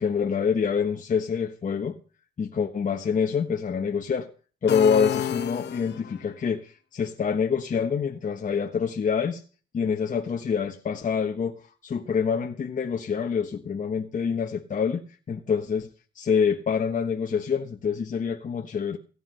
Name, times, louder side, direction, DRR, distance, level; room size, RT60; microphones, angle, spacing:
voice 1, 0.0-2.0 2.4-4.3 4.6-9.4 9.7-15.9 16.1-19.0, left 6 dB, 40° left, 1.2 m, -26 dB
sound 1, 4.7-6.3, left 10 dB, 60° left, 0.9 m, -30 dB
16.5 x 9.6 x 5.5 m
cardioid pair, 90°, 20 cm